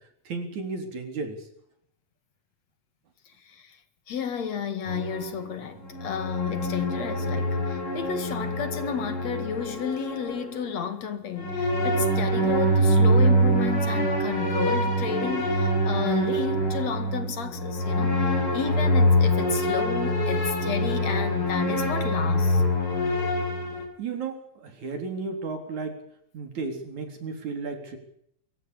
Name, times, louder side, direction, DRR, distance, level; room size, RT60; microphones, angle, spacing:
voice 1, 0.3-1.4 24.0-26.0 26.3-28.0, right 4 dB, 70° right, 5.2 m, -33 dB
voice 2, 3.5-3.8 4.1-22.6, left 7 dB, 60° left, 3.1 m, -32 dB
sound 1, 4.9-10.8 11.4-23.9, equal, 45° left, 6.1 m, -25 dB
25.0 x 14.5 x 8.6 m
omnidirectional pair, 3.4 m